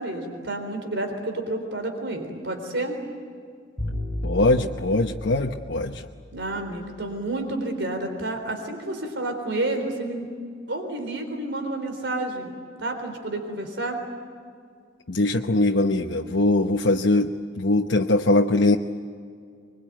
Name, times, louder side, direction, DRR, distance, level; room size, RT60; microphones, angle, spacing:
voice 1, 0.0-3.0 6.3-10.3 10.7-12.5 12.8-14.0, right 2 dB, 80° right, 5 dB, 3.9 m, -30 dB
Bowed string instrument, 3.8-6.8, left 1 dB, 35° left, 7.3 m, -34 dB
voice 2, 4.2-6.0 15.1-18.8, left 2 dB, 85° left, 2 dB, 1.0 m, -21 dB
25.5 x 22.5 x 9.1 m, 2.2 s
head